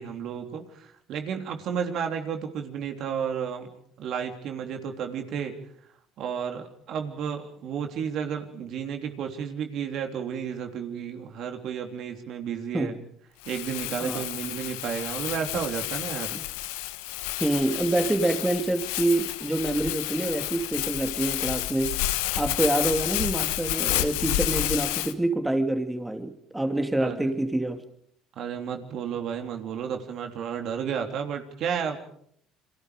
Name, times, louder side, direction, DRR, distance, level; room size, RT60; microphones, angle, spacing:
voice 1, 0.0-3.7 4.0-5.6 6.2-12.9 13.4-16.3 27.0-27.3 28.3-32.0, right 7 dB, 65° right, 5 dB, 3.2 m, -32 dB
Crumpling crinkling, 13.4-25.1, left 16 dB, 85° left, 1.2 m, -30 dB
voice 2, 17.4-27.8, right 1 dB, 10° right, 7 dB, 2.5 m, -27 dB
30.0 x 23.0 x 5.1 m, 0.67 s
supercardioid pair, 75°, 0 cm